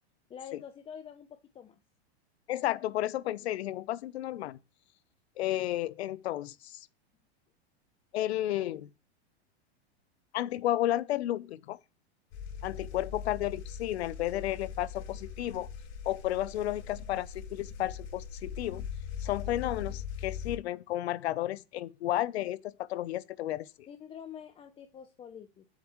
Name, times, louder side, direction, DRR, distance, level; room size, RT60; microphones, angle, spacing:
voice 1, 0.3-1.8 23.9-25.7, left 8 dB, 15° left, 0.6 m, -46 dB
voice 2, 2.5-4.6 5.4-6.9 8.1-8.9 10.3-11.8 12.6-15.7 16.1-18.9 19.2-23.7, left 14 dB, 75° left, 0.7 m, -32 dB
sound 1, 12.3-20.6, left 7 dB, 50° left, 4.1 m, -41 dB
9.9 x 7.6 x 3.1 m
hypercardioid pair, 130°, 33 cm